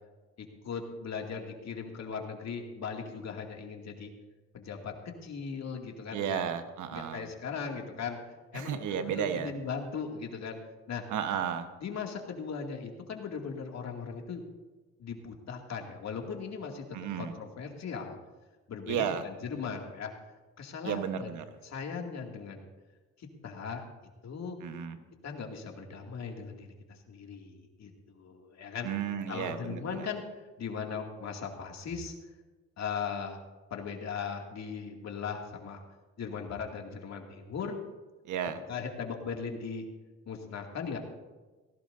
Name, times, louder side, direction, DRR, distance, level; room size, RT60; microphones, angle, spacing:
voice 1, 0.4-4.1 4.5-4.9 5.2-6.4 6.9-10.6 10.9-11.1 11.8-14.4 15.0-16.8 17.2-18.2 18.7-20.1 20.6-22.7 23.2-23.8 24.2-24.6 25.2-28.9 29.3-30.2 30.6-32.1 32.8-33.4 33.7-35.8 36.2-37.8 38.7-39.9 40.2-41.0, left 6 dB, 60° left, 2 dB, 2.5 m, -38 dB
voice 2, 6.1-7.2 8.5-9.5 11.1-11.7 16.9-17.3 18.9-19.2 20.8-21.4 24.6-25.0 28.8-30.1 38.3-38.6, right 8 dB, 80° right, 8 dB, 1.3 m, -33 dB
18.5 x 16.5 x 2.7 m, 1.3 s
cardioid pair, 90°, 30 cm